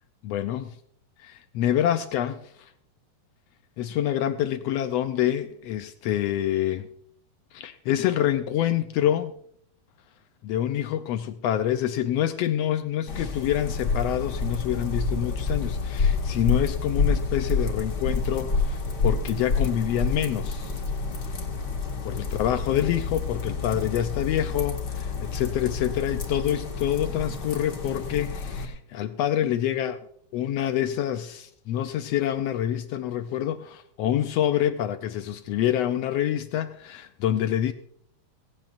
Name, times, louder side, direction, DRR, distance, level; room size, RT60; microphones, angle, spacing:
voice 1, 0.2-0.7 1.2-2.7 3.8-6.9 7.5-9.3 10.4-20.7 22.0-30.0 30.3-37.7, left 11 dB, 85° left, 1.4 m, -27 dB
sound 1, 13.1-28.7, left 4 dB, 40° left, 2.1 m, -28 dB
17.5 x 16.5 x 2.6 m
omnidirectional pair, 3.6 m